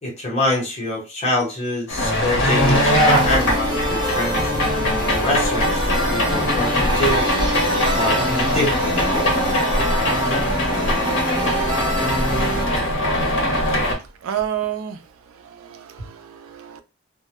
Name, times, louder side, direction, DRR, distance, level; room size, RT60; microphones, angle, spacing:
voice 1, 0.0-4.5 5.2-7.2 7.9-9.3, left 1 dB, 30° left, 1.0 m, -25 dB
sound 1, 1.9-13.9, equal, 65° left, 0.8 m, -21 dB
sound 2, 2.4-12.6, equal, 20° right, 0.6 m, -27 dB
voice 2, 14.2-15.0 15.3-16.8, right 10 dB, 75° right, 0.4 m, -29 dB
2.2 x 2.0 x 2.9 m
head